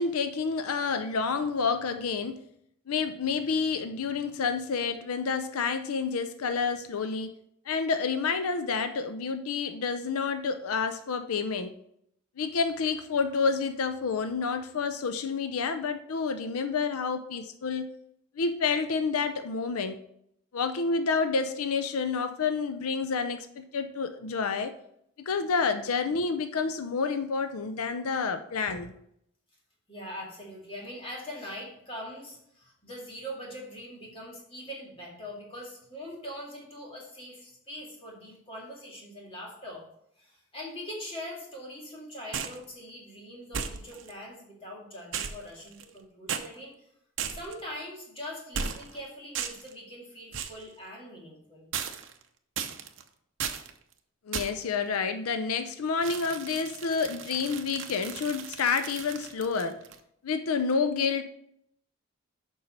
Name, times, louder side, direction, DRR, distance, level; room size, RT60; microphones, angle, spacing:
voice 1, 0.0-2.4 2.9-7.3 7.7-11.7 12.4-17.9 18.4-20.0 20.5-24.7 25.3-28.9 54.3-59.8 60.2-61.2, left 5 dB, 85° left, 9 dB, 0.5 m, -29 dB
voice 2, 29.9-39.8 40.2-46.7 47.3-51.7, equal, 25° left, -3 dB, 2.1 m, -42 dB
sound 1, 42.3-42.6 43.5-44.1 45.1-46.0 46.3-46.5 47.2-47.6 48.5-49.0 49.3-49.7 50.3-50.6 51.7-52.2 52.6-53.0 53.4-53.7 54.3-54.7 56.0-60.0, right 7 dB, 60° right, 0.7 m, -36 dB
7.0 x 5.4 x 5.3 m, 0.74 s
head